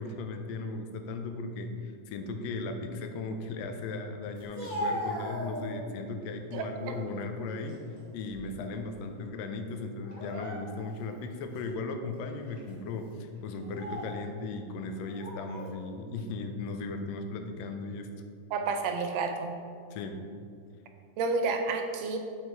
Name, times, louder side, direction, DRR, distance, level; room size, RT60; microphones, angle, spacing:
voice 1, 0.0-7.8 8.1-18.1 19.9-20.2, left 3 dB, 75° left, 5 dB, 1.7 m, -37 dB
Speech, 4.4-6.0 6.5-7.1 7.5-8.7 9.0-9.2 10.0-11.0 11.5-11.7 12.5-12.7 13.5-14.2 15.1-15.7, equal, 20° left, 1.3 m, -38 dB
voice 2, 6.5-6.9 18.5-19.5 21.2-22.2, right 4 dB, 75° right, 5 dB, 1.7 m, -30 dB
8.0 x 4.9 x 4.5 m, 2.3 s
omnidirectional pair, 3.4 m